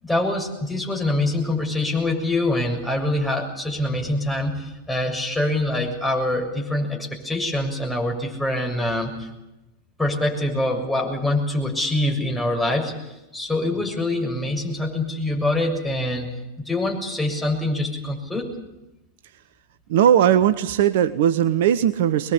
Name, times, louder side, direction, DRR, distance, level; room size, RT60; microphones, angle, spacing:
voice 1, 0.0-9.3 10.0-16.3 16.7-18.5, left 1 dB, 5° left, 0 dB, 6.9 m, -24 dB
voice 2, 19.9-22.3, right 10 dB, 55° right, 12 dB, 1.1 m, -18 dB
24.5 x 21.5 x 8.5 m, 0.95 s
figure-of-eight pair, 90°, 0 cm